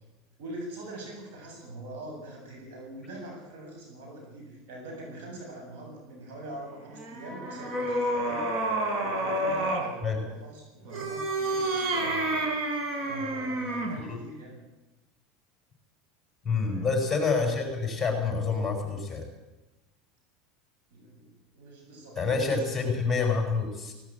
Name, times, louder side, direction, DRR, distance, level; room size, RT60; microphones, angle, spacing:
voice 1, 0.4-8.5 9.0-12.5 13.1-14.6 16.6-16.9 20.9-22.7, right 1 dB, 80° right, 1 dB, 7.5 m, -43 dB
sound 1, 6.9-9.9 10.8-14.0, right 1 dB, 50° right, 5.4 m, -29 dB
voice 2, 16.4-19.3 22.2-23.9, left 4 dB, 10° left, 3 dB, 7.2 m, -27 dB
18.0 x 18.0 x 9.0 m, 1.0 s
supercardioid pair, 125°, 0 cm